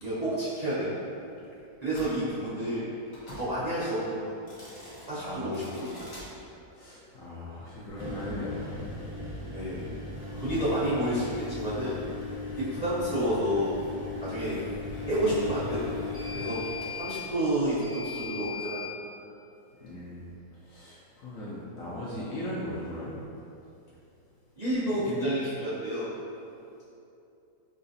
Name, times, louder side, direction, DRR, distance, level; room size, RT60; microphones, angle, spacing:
voice 1, 0.0-1.0 1.8-2.9 3.3-4.3 5.1-6.1 9.5-9.9 10.4-12.0 12.6-13.8 14.2-14.6 15.1-16.6 17.0-18.8 24.6-26.1, right 1 dB, 65° right, -12 dB, 0.3 m, -30 dB
sound 1, 1.9-2.1 3.1-3.5 4.4-5.1 5.5-6.3 7.8-18.9, left 3 dB, 25° left, 0.6 m, -38 dB
voice 2, 5.2-5.6 6.7-9.1 19.8-23.2, left 1 dB, 65° left, -7 dB, 0.9 m, -38 dB
5.5 x 2.4 x 2.7 m, 2.7 s
omnidirectional pair, 1.9 m